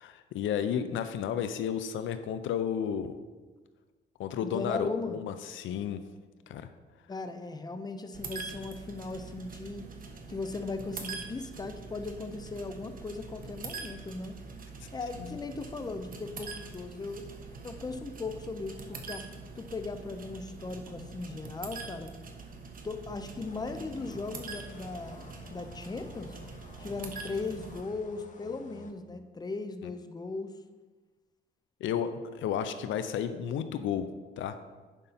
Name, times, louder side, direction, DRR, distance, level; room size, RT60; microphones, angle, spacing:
voice 1, 0.0-3.1 4.2-6.0 6.5-6.7 15.2-15.4 29.8-29.9 31.8-34.1 34.4-34.6, left 8 dB, 75° left, 10 dB, 0.6 m, -32 dB
voice 2, 4.4-5.2 7.1-9.9 10.3-14.4 14.9-17.2 17.6-19.3 19.6-22.1 22.8-26.4 26.8-30.5, left 3 dB, 20° left, 8 dB, 0.7 m, -38 dB
sound 1, 8.1-27.8, right 4 dB, 45° right, 1.2 m, -44 dB
sound 2, 23.4-28.9, left 3 dB, 40° left, 1.0 m, -52 dB
10.5 x 5.4 x 4.2 m, 1.3 s
cardioid pair, 90°, 20 cm